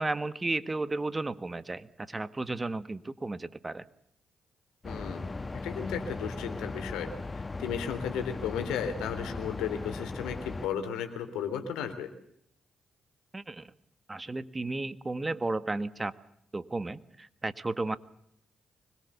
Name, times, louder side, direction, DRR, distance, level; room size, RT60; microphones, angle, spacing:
voice 1, 0.0-3.8 13.3-13.7 14.1-16.1 16.5-18.0, right 2 dB, 25° right, 14 dB, 1.6 m, -33 dB
voice 2, 4.8-5.3 5.6-7.1 7.6-12.1, left 8 dB, 80° left, 8 dB, 3.4 m, -34 dB
sound 1, 4.8-10.7, left 3 dB, 30° left, 1.3 m, -38 dB
25.0 x 21.5 x 7.0 m, 0.71 s
hypercardioid pair, 45°, 0 cm